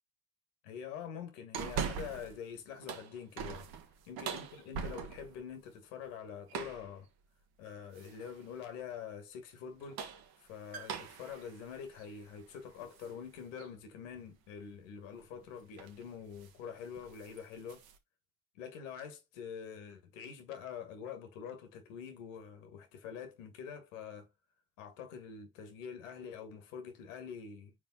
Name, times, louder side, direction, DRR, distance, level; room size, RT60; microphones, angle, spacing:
voice 1, 0.6-3.7 4.1-7.1 7.6-10.0 10.4-17.8 18.6-24.3 24.8-27.7, left 7 dB, 90° left, 1.7 m, -45 dB
sound 1, 1.5-2.4 2.7-5.4 6.5-6.9 7.9-8.4 9.7-13.1 13.6-13.7 15.2-15.4 15.8-16.0 16.3-16.6 16.9-18.0, right 7 dB, 75° right, 1.6 m, -42 dB
7.0 x 5.0 x 4.0 m
hypercardioid pair, 55°, 37 cm